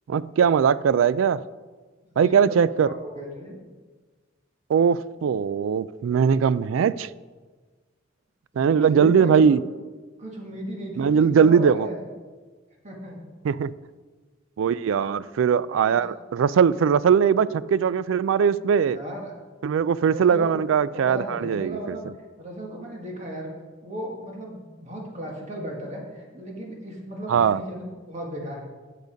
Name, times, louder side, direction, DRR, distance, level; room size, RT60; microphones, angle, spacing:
voice 1, 0.1-1.4 2.2-2.9 4.7-7.1 8.6-9.6 11.0-11.9 13.4-13.7 14.6-19.0 19.6-22.0 27.3-27.6, right 7 dB, 85° right, 18 dB, 0.3 m, -20 dB
voice 2, 2.1-3.6 8.5-9.6 10.2-12.0 12.8-13.2 15.9-16.1 18.9-19.3 20.0-20.6 20.9-22.1 22.4-23.5 23.8-28.7, equal, 35° right, -1 dB, 1.7 m, -36 dB
10.5 x 6.7 x 5.1 m, 1.4 s
head